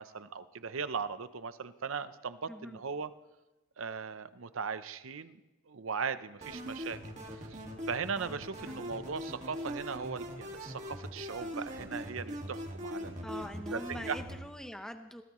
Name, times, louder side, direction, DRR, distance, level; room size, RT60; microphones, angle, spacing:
voice 1, 0.0-3.1 3.8-5.4 5.7-7.0 7.4-7.6 7.9-13.2 13.7-14.2, right 5 dB, 75° right, 13 dB, 0.7 m, -38 dB
voice 2, 2.5-2.8 8.6-8.8 13.2-15.2, equal, 5° left, 7 dB, 0.7 m, -43 dB
sound 1, 6.4-14.4, equal, 35° right, 2.0 m, -41 dB
21.5 x 16.5 x 3.1 m, 1.1 s
head